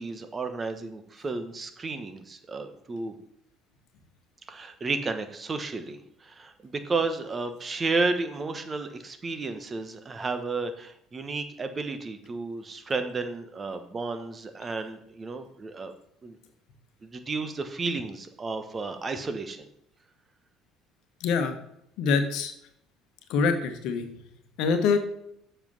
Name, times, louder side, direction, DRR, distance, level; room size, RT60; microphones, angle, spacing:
voice 1, 0.0-3.1 4.5-15.9 16.2-16.4 17.0-19.7, right 3 dB, 30° right, 8 dB, 1.1 m, -32 dB
voice 2, 21.2-21.6 22.0-22.5 23.3-24.1 24.6-25.0, left 5 dB, 65° left, 7 dB, 1.1 m, -24 dB
7.4 x 5.6 x 5.4 m, 0.73 s
hypercardioid pair, 60°, 0 cm